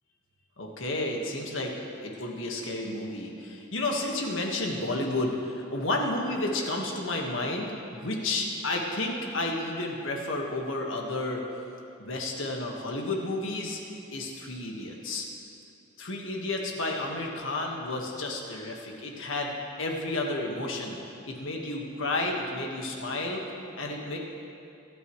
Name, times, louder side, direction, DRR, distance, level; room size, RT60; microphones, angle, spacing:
voice 1, 0.6-1.7 2.0-11.4 12.0-13.8 14.1-15.3 16.0-24.2, left 2 dB, 75° left, 0 dB, 1.6 m, -31 dB
24.5 x 9.4 x 3.2 m, 2.7 s
head